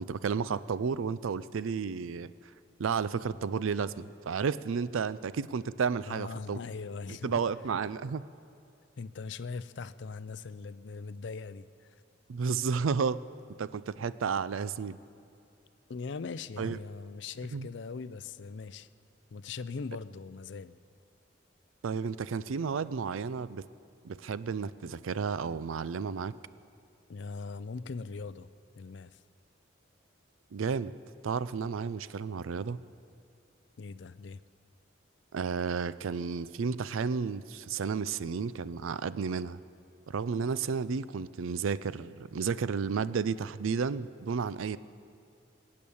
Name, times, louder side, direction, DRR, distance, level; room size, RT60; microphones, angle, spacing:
voice 1, 0.0-2.3 2.8-6.6 7.2-8.2 12.3-13.2 13.6-15.0 16.6-16.8 17.5-17.7 21.8-23.6 24.0-26.3 30.5-30.9 31.2-32.8 35.3-39.6 40.1-44.8, right 5 dB, 85° right, 0.4 m, -32 dB
voice 2, 6.1-7.4 9.0-12.0 15.9-18.9 19.3-20.8 27.1-28.5 28.8-29.2 33.8-34.4, left 4 dB, 60° left, 0.4 m, -40 dB
23.5 x 8.6 x 7.0 m
head